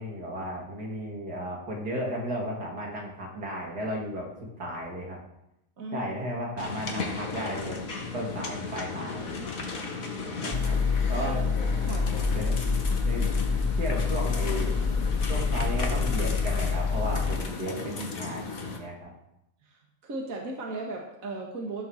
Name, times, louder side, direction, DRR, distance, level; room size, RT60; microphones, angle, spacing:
voice 1, 0.0-4.3 4.6-5.2 5.9-7.8 8.1-9.4 10.4-10.8 11.1-11.4 12.3-12.5 13.0-13.2 13.8-14.8 15.3-19.1, equal, 90° right, -1 dB, 3.5 m, -34 dB
voice 2, 5.8-6.1 11.2-11.4 11.8-12.1 17.7-18.1 19.6-21.9, right 2 dB, 60° right, 0 dB, 2.1 m, -37 dB
sound 1, 6.6-18.8, left 4 dB, 60° left, 2.0 m, -35 dB
sound 2, 10.5-17.4, left 5 dB, 25° left, 0.7 m, -27 dB
15.0 x 6.9 x 6.5 m, 0.84 s
omnidirectional pair, 1.7 m